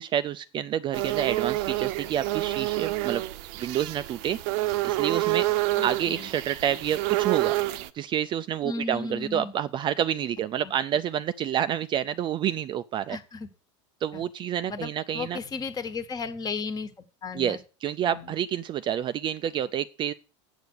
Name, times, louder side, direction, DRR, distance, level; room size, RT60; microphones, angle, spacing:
voice 1, 0.0-3.2 3.6-5.5 5.8-13.2 14.0-15.4 17.3-20.1, right 10 dB, 30° right, 0.4 m, -29 dB
sound 1, 0.9-7.9, right 18 dB, 60° right, 0.7 m, -28 dB
voice 2, 5.7-6.3 8.6-9.5 10.6-10.7 13.1-13.5 14.1-14.2 14.7-16.9 17.2-17.6 18.0-18.3, left 4 dB, 25° left, 1.4 m, -35 dB
8.0 x 7.0 x 6.3 m
supercardioid pair, 120°, 15 cm